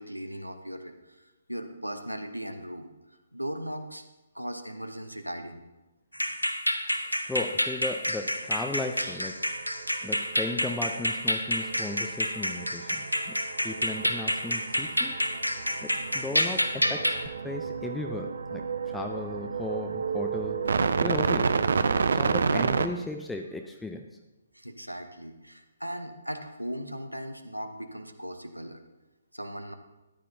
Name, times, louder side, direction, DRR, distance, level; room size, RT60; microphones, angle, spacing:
voice 1, 0.0-2.9 3.3-4.0 4.3-5.6 24.5-28.8 29.3-29.7, equal, 90° right, 7 dB, 0.9 m, -38 dB
sound 1, 6.1-17.3, equal, 90° left, 0.8 m, -29 dB
voice 2, 6.9-9.4 10.0-13.4 13.6-15.2 15.8-17.2 17.4-20.6 21.0-24.0, left 2 dB, 5° left, 3 dB, 0.4 m, -36 dB
sound 2, 8.8-9.2 9.4-22.9, right 5 dB, 55° right, 0.5 m, -31 dB
13.5 x 9.9 x 2.7 m, 1.1 s
figure-of-eight pair, 135°, 0 cm